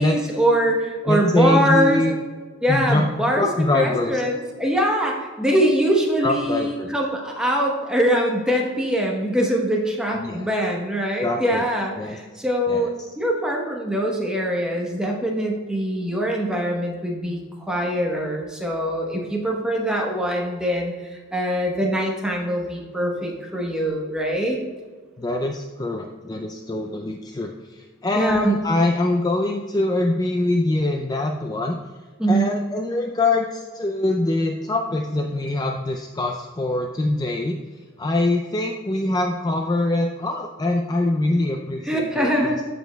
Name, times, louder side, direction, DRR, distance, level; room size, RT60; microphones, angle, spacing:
voice 1, 0.0-2.0 2.6-17.4 17.7-24.6 28.1-28.5 32.2-32.5 41.8-42.6, equal, 5° right, -1 dB, 0.9 m, -23 dB
voice 2, 1.1-2.1 2.7-3.0 3.4-4.2 6.2-6.9 10.1-10.5 11.2-11.6 12.0-12.2 12.7-12.9 25.2-31.8 32.3-42.6, left 2 dB, 20° left, 3 dB, 0.3 m, -24 dB
14.0 x 5.1 x 2.2 m, 1.5 s
head